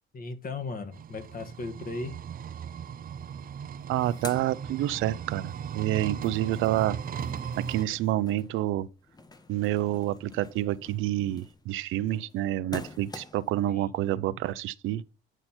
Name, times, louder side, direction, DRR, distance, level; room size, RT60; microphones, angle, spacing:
voice 1, 0.1-2.1 13.7-13.9, left 3 dB, 45° left, 1.6 m, -37 dB
sound 1, 0.9-7.9, right 7 dB, 45° right, 0.6 m, -37 dB
sound 2, 3.2-3.3 3.6-5.4 5.7-13.6, left 3 dB, 20° left, 1.0 m, -47 dB
voice 2, 3.9-7.0 7.6-8.9 9.5-15.0, right 14 dB, 85° right, 0.5 m, -28 dB
9.0 x 4.3 x 4.2 m
cardioid pair, 90°, 20 cm